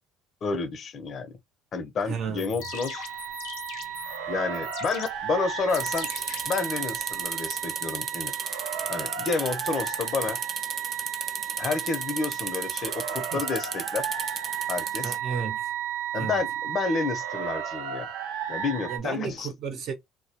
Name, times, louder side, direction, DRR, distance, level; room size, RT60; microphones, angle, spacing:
voice 1, 0.4-1.4 1.7-3.0 4.3-6.1 6.5-8.3 8.9-10.4 11.6-14.0 14.7-15.1 16.1-18.1 18.5-19.5, left 4 dB, 45° left, 0.6 m, -30 dB
voice 2, 2.1-2.4 13.3-13.4 15.0-15.7 16.1-16.4 18.9-19.9, right 6 dB, 60° right, 0.8 m, -33 dB
sound 1, 2.2-7.2, left 9 dB, 85° left, 0.6 m, -42 dB
sound 2, 2.6-19.0, right 9 dB, 85° right, 0.6 m, -34 dB
sound 3, 5.7-15.2, right 5 dB, 35° right, 0.3 m, -34 dB
2.2 x 2.1 x 2.8 m
cardioid pair, 100°, 0 cm